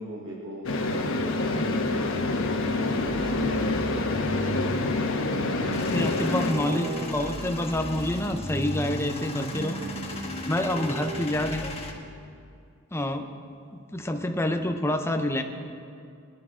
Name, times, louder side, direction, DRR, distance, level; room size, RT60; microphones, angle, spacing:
voice 1, 0.0-2.0 2.6-2.9 3.2-4.3 6.5-7.2 9.5-10.2, right 1 dB, 60° right, -2 dB, 1.5 m, -38 dB
sound 1, 0.6-6.5, left 2 dB, 65° left, 1.2 m, -27 dB
sound 2, 3.0-11.6, right 2 dB, 40° right, 2.5 m, -37 dB
Male speech man speaking / Vehicle / Engine starting, 5.7-11.9, left 2 dB, 30° left, 1.3 m, -37 dB
voice 2, 5.9-9.8 10.5-11.8 12.9-13.3 13.9-15.4, left 1 dB, 10° left, 5 dB, 0.7 m, -27 dB
22.0 x 11.0 x 3.8 m, 2.4 s
head